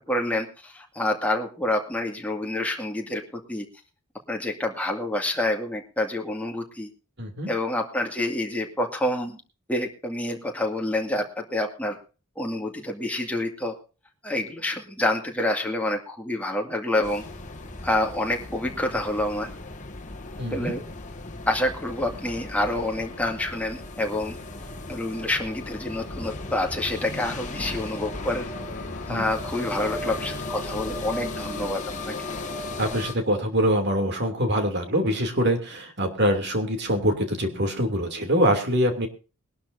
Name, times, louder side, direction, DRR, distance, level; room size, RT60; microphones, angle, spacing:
voice 1, 0.1-3.7 4.3-6.9 7.5-9.4 9.7-12.0 12.4-13.7 14.2-17.2 17.8-19.5 20.5-20.8 21.5-24.4 24.9-28.5 29.1-32.2, left 1 dB, 5° left, 1 dB, 2.2 m, -27 dB
voice 2, 7.2-7.5 20.4-20.7 29.1-29.3 32.8-39.1, equal, 50° right, 5 dB, 2.8 m, -24 dB
sound 1, 17.0-33.1, left 2 dB, 35° left, 1.7 m, -36 dB
sound 2, 28.0-33.0, left 2 dB, 50° left, 1.5 m, -41 dB
22.0 x 12.0 x 2.7 m, 0.35 s
head